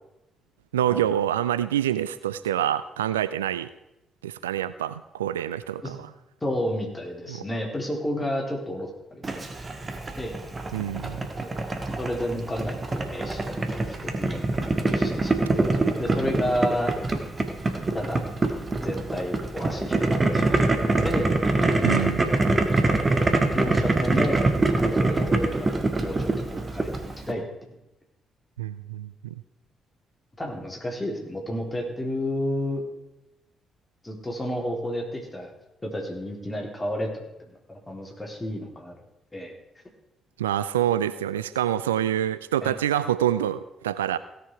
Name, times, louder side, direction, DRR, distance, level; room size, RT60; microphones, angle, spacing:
voice 1, 0.7-3.7 4.2-6.1 7.3-7.4 10.7-11.2 21.8-22.4 28.6-29.3 40.4-44.2, right 11 dB, 85° right, 15 dB, 0.3 m, -26 dB
voice 2, 6.4-9.7 10.2-10.4 12.0-14.4 14.7-16.9 17.9-18.3 18.8-21.3 23.4-24.4 25.0-27.4 30.4-32.8 34.0-35.5 35.8-39.0 39.3-39.5 42.6-42.7, left 1 dB, 20° left, -1 dB, 3.8 m, -31 dB
Boiling, 9.2-27.3, right 2 dB, 30° right, 1.6 m, -24 dB
16.5 x 6.6 x 4.8 m, 0.89 s
figure-of-eight pair, 40°, 0 cm